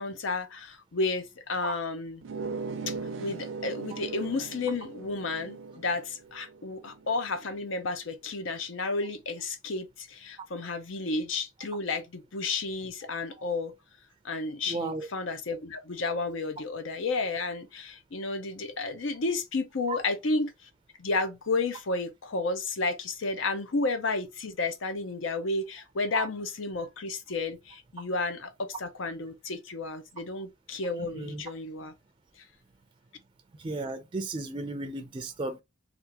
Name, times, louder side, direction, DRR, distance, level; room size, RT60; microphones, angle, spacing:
voice 1, 0.0-2.2 2.9-13.7 14.2-20.7 21.0-31.9, left 3 dB, 80° left, 0.6 m, -32 dB
sound 1, 2.2-7.5, right 4 dB, 85° right, 0.5 m, -39 dB
voice 2, 14.7-15.1 19.9-20.0 26.1-26.3 31.0-31.4 33.6-35.6, right 3 dB, 25° right, 0.4 m, -34 dB
3.4 x 2.4 x 2.8 m
head